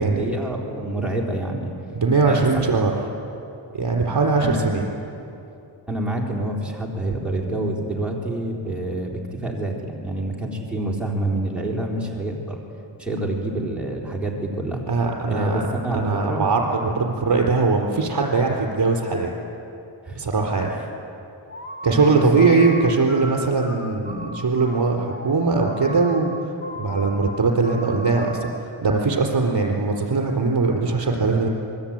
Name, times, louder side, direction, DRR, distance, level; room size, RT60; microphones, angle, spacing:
voice 1, 0.0-1.7 2.3-2.7 4.4-4.6 5.9-12.6 13.0-14.8 15.3-15.5 15.8-16.4 20.0-20.2 21.9-22.6, right 2 dB, ahead, -3 dB, 3.8 m, -27 dB
voice 2, 1.9-3.0 3.7-4.8 14.9-15.6 15.9-19.3 20.1-20.7 21.8-31.5, right 3 dB, 55° right, 1 dB, 4.3 m, -21 dB
sound 1, 21.5-28.7, equal, 25° left, 1.7 m, -37 dB
27.5 x 21.5 x 9.0 m, 2.8 s
wide cardioid pair, 135°, 47 cm